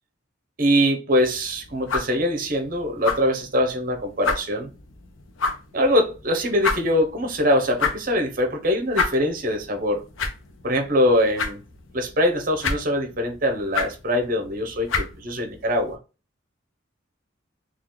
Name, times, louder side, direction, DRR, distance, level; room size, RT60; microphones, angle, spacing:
voice 1, 0.6-4.7 5.7-10.0 10.6-11.6 11.9-16.0, equal, 45° right, 0.7 m, -23 dB
sound 1, 1.1-16.0, left 4 dB, 85° left, 0.6 m, -32 dB
3.7 x 2.4 x 3.1 m
head